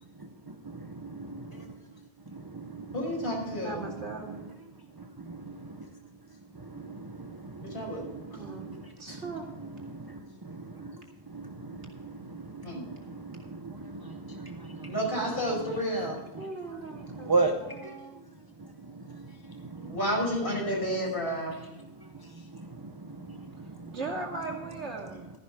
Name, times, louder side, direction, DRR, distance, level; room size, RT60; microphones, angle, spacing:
voice 1, 0.2-1.8 2.3-3.7 4.3-4.4 4.9-5.9 6.5-15.3 15.5-15.8 16.3-16.5 16.9-18.0 18.6-20.0 21.5-24.0, right 3 dB, 25° right, 5 dB, 0.7 m, -38 dB
voice 2, 2.9-3.8 7.6-8.0 9.1-9.2 12.6-12.8 14.9-16.2 19.8-21.6, equal, 45° left, -2 dB, 5.5 m, -31 dB
voice 3, 3.5-4.3 8.4-8.7 9.0-9.4 16.4-18.2 23.9-25.3, right 3 dB, 65° right, 0 dB, 2.5 m, -39 dB
13.5 x 11.0 x 3.6 m, 1.1 s
omnidirectional pair, 1.2 m